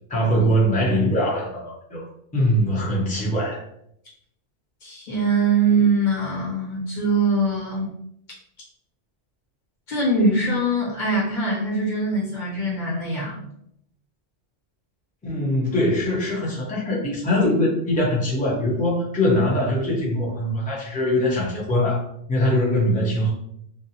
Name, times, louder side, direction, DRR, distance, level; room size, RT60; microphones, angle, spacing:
voice 1, 0.1-2.1 2.3-3.6 15.2-22.0 22.3-23.3, left 1 dB, 10° left, -5 dB, 0.5 m, -22 dB
voice 2, 4.8-7.9 9.9-13.4, right 2 dB, 40° left, -6 dB, 1.2 m, -22 dB
2.5 x 2.1 x 2.8 m, 0.73 s
omnidirectional pair, 1.3 m